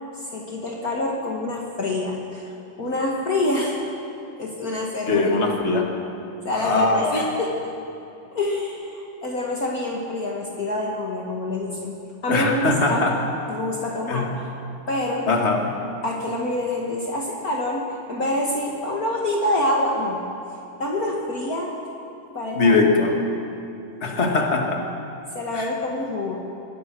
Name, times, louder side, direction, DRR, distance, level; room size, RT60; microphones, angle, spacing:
voice 1, 0.3-3.8 4.4-5.3 6.4-7.5 8.3-11.9 12.2-13.1 13.5-14.3 14.9-15.3 16.0-20.2 20.8-21.7 22.3-22.8 25.3-26.4, left 1 dB, 60° left, -2 dB, 0.9 m, -26 dB
voice 2, 5.1-6.0 6.5-7.3 12.3-13.2 14.1-14.3 15.3-15.7 22.5-23.1 24.0-24.8 25.5-25.6, left 3 dB, 30° left, 1 dB, 1.2 m, -21 dB
24.5 x 20.0 x 6.3 m, 2.8 s
omnidirectional pair, 4.8 m